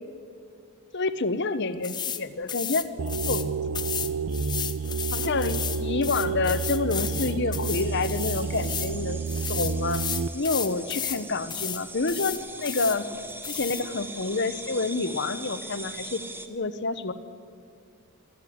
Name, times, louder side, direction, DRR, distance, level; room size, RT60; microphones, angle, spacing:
voice 1, 0.9-2.9 3.2-3.4 5.1-9.2 9.5-10.0 10.3-13.1 13.5-16.2 16.5-17.1, left 3 dB, 55° left, 12 dB, 1.0 m, -28 dB
sound 1, 1.8-2.2 2.5-3.5 3.7-8.9 9.3-11.2 11.5-11.8 12.1-13.0 13.4-13.8, left 8 dB, 20° left, 0.8 m, -33 dB
sound 2, 3.0-10.3, right 5 dB, 65° right, 0.5 m, -30 dB
sound 3, 7.7-16.5, right 2 dB, 10° right, 1.1 m, -41 dB
23.0 x 14.5 x 9.5 m, 2.2 s
head